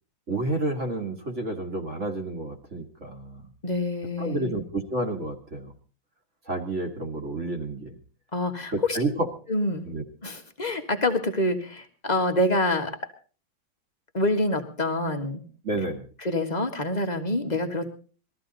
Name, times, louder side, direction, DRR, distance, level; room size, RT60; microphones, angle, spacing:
voice 1, 0.3-3.5 4.2-5.7 6.5-8.0 8.7-9.3 9.9-10.0 15.6-16.1, right 2 dB, 40° right, 4 dB, 2.0 m, -30 dB
voice 2, 3.6-4.6 8.3-9.0 9.5-9.9 10.2-12.9 14.1-15.4 16.2-17.9, left 1 dB, 25° left, 5 dB, 1.5 m, -26 dB
21.0 x 14.0 x 4.0 m, 0.38 s
omnidirectional pair, 2.1 m